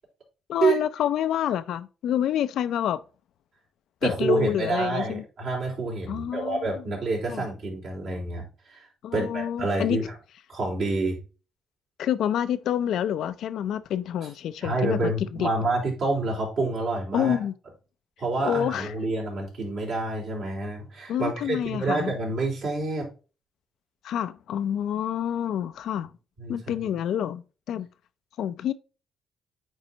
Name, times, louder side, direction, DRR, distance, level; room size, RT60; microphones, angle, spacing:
voice 1, 0.5-3.0 4.0-5.2 6.1-6.8 7.3-7.5 9.0-10.0 12.0-15.5 17.1-17.5 18.4-18.9 21.1-22.1 24.0-26.1 26.5-27.9 28.4-28.7, left 10 dB, 75° left, 0.4 m, -28 dB
voice 2, 4.0-8.9 9.1-10.0 10.5-11.2 14.6-17.4 18.2-23.1 26.4-26.6, right 3 dB, 65° right, 3.9 m, -28 dB
9.1 x 4.0 x 2.8 m
cardioid pair, 90°, 0 cm